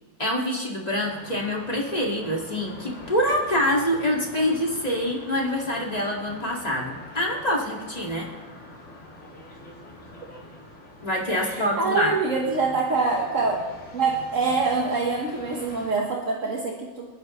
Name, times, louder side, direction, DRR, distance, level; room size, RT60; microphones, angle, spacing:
voice 1, 0.2-8.3 11.0-12.1, equal, 30° left, -2 dB, 2.3 m, -25 dB
sound 1, 1.0-15.9, left 1 dB, 60° left, 2.6 m, -44 dB
voice 2, 11.3-13.7 13.9-17.1, right 4 dB, 65° right, -1 dB, 1.7 m, -25 dB
29.5 x 9.9 x 3.2 m, 1.2 s
omnidirectional pair, 1.4 m